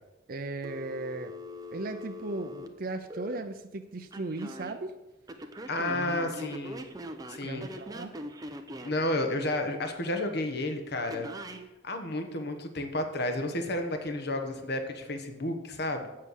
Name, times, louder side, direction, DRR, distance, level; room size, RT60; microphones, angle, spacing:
voice 1, 0.3-1.3 1.7-4.9 5.9-6.4 7.4-8.1, right 2 dB, 50° right, 5 dB, 0.6 m, -37 dB
Telephone, 0.6-3.4 4.1-4.7 5.3-9.0 11.1-11.6, equal, 20° right, 0.9 m, -42 dB
voice 2, 5.7-6.8 7.3-7.7 8.8-11.3 11.8-16.1, left 1 dB, 60° left, 5 dB, 1.3 m, -31 dB
7.5 x 7.4 x 8.2 m, 1.0 s
head